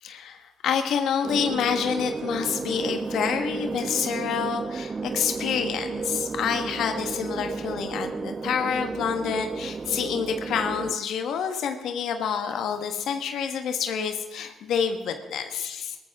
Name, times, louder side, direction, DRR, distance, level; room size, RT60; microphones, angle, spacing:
voice 1, 0.0-16.0, left 7 dB, 75° left, 6 dB, 1.3 m, -28 dB
sound 1, 1.2-11.0, right 4 dB, 35° right, 0.5 m, -32 dB
18.0 x 14.0 x 3.6 m, 1.1 s
cardioid pair, 90°, 0 cm